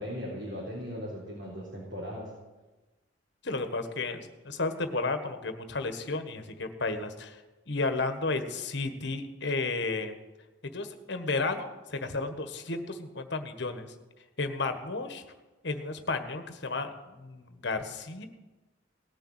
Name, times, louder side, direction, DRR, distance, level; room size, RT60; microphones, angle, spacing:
voice 1, 0.0-2.3, equal, 65° right, -5 dB, 3.8 m, -38 dB
voice 2, 3.4-10.1 10.7-13.9 14.4-15.2 15.6-18.3, left 3 dB, 65° left, 8 dB, 1.5 m, -33 dB
18.5 x 6.8 x 9.6 m, 1.1 s
head